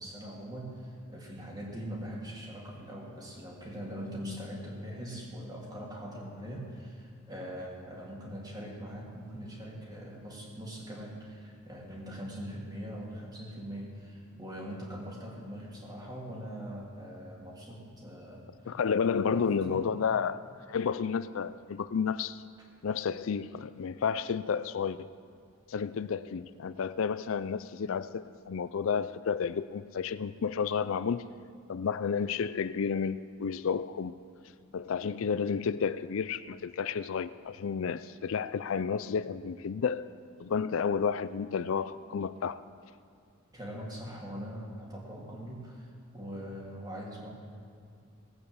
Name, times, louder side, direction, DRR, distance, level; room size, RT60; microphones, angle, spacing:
voice 1, 0.0-18.8 19.2-19.9 43.5-47.3, equal, 20° right, 3.0 m, -42 dB
voice 2, 18.7-20.4 20.7-22.4 22.8-25.1 25.7-31.3 31.7-34.1 34.7-40.0 40.4-42.6, left 6 dB, 70° left, 0.4 m, -31 dB
18.5 x 8.7 x 7.9 m
head